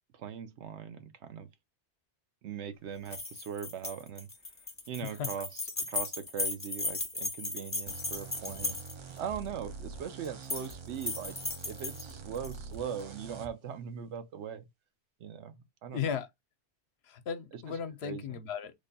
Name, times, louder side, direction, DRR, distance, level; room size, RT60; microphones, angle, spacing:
voice 1, 0.1-1.5 2.4-4.3 4.9-5.6 5.9-8.8 9.2-11.4 11.6-14.7 15.2-16.1 17.5-17.6 18.0-18.2, right 8 dB, 80° right, 0.9 m, -40 dB
sound 1, 3.1-9.2 10.2-10.7 11.0-12.5, left 2 dB, 20° left, 0.5 m, -36 dB
sound 2, 7.9-13.5, right 4 dB, 50° right, 0.3 m, -45 dB
voice 2, 15.9-16.3 17.0-18.7, left 7 dB, 70° left, 0.8 m, -36 dB
3.3 x 2.2 x 3.9 m
omnidirectional pair, 1.2 m